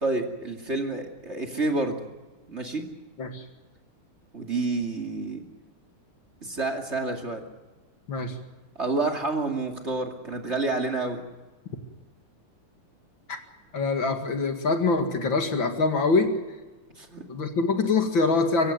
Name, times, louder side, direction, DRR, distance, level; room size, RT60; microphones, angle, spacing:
voice 1, 0.0-2.0 2.5-2.8 4.3-5.5 6.4-7.4 8.8-11.2 17.0-17.2, right 3 dB, 30° right, 3 dB, 2.6 m, -29 dB
voice 2, 13.7-16.4 17.3-18.7, left 3 dB, 60° left, 6 dB, 2.8 m, -24 dB
24.5 x 16.0 x 9.2 m, 1.2 s
omnidirectional pair, 2.4 m